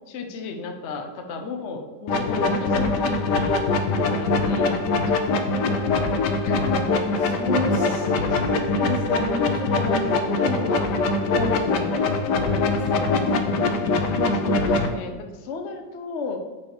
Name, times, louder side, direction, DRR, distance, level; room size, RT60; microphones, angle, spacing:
voice 1, 0.1-3.6 3.9-5.2 6.4-6.9 7.6-8.4 14.3-16.4, left 3 dB, 50° left, 4 dB, 0.9 m, -34 dB
sound 1, 2.1-14.9, left 3 dB, 65° left, 1.3 m, -23 dB
voice 2, 7.1-8.0 8.4-11.9 12.3-14.2, equal, 90° left, -4 dB, 3.4 m, -31 dB
8.6 x 4.3 x 4.8 m, 1.4 s
omnidirectional pair, 2.1 m